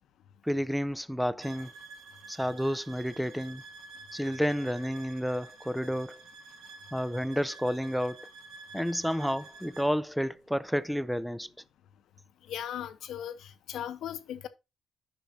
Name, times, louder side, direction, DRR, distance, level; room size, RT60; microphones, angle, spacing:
voice 1, 0.4-1.7 2.3-3.6 4.1-6.2 6.9-8.3 8.7-11.5, equal, ahead, 0.4 m, -30 dB
sound 1, 1.4-9.9, right 3 dB, 80° right, 2.4 m, -49 dB
voice 2, 12.5-14.5, left 10 dB, 75° left, 0.8 m, -38 dB
10.5 x 6.1 x 2.7 m
cardioid pair, 90°, 0 cm